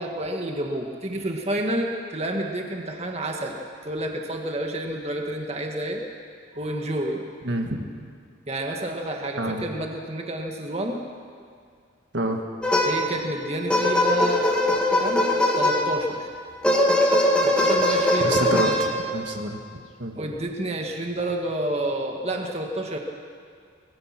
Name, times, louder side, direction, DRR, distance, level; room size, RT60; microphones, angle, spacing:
voice 1, 0.0-3.6 3.8-6.0 6.5-7.2 8.5-11.0 12.8-14.5 15.0-15.2 15.5-16.3 17.4-18.8 20.1-23.0, right 1 dB, 30° right, 2 dB, 1.8 m, -29 dB
voice 2, 7.4-7.9 9.4-9.6 12.1-12.4 18.2-20.2, right 1 dB, 60° right, 3 dB, 1.8 m, -28 dB
sound 1, 12.6-13.3 13.7-16.1 16.6-19.2, left 1 dB, 5° left, 2.2 m, -21 dB
23.5 x 20.5 x 6.0 m, 2.2 s
head